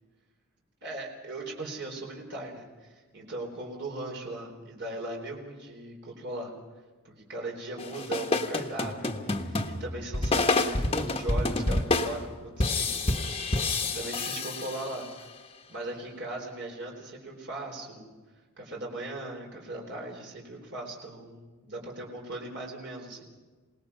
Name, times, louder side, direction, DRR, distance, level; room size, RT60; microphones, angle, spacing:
voice 1, 0.8-6.5 7.0-13.6 13.8-15.3 15.7-18.1 18.6-23.2, right 2 dB, 55° right, 0 dB, 4.1 m, -39 dB
sound 1, 7.8-15.2, left 2 dB, 25° left, 1.2 m, -28 dB
27.5 x 19.0 x 5.7 m, 1.3 s
head